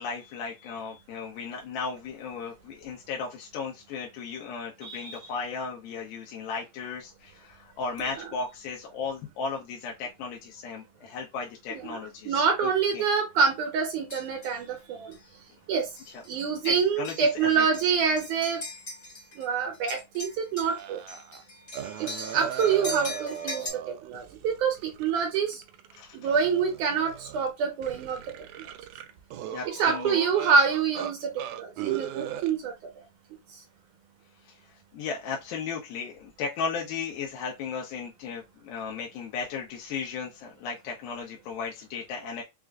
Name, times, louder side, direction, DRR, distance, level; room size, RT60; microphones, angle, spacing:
voice 1, 0.0-13.0 16.1-16.2 16.6-17.6 26.0-26.2 29.5-30.2 34.5-34.6 34.9-42.4, left 5 dB, 85° left, 2.5 m, -35 dB
voice 2, 4.8-5.2 8.1-8.2 11.7-12.0 12.3-15.1 15.7-15.9 16.3-18.6 19.4-21.0 22.0-22.1 22.3-23.7 24.0-25.6 26.1-28.2 29.8-32.7, right 6 dB, 70° right, 2.0 m, -26 dB
sound 1, 14.1-14.6 15.1-15.3 16.0-16.3 16.6-19.5 19.7-23.7, left 2 dB, 30° left, 1.1 m, -40 dB
sound 2, 20.6-21.4 21.7-26.0 26.3-27.5 27.8-31.1 31.4-32.5, right 10 dB, 90° right, 1.8 m, -37 dB
6.0 x 2.4 x 2.3 m
omnidirectional pair, 4.2 m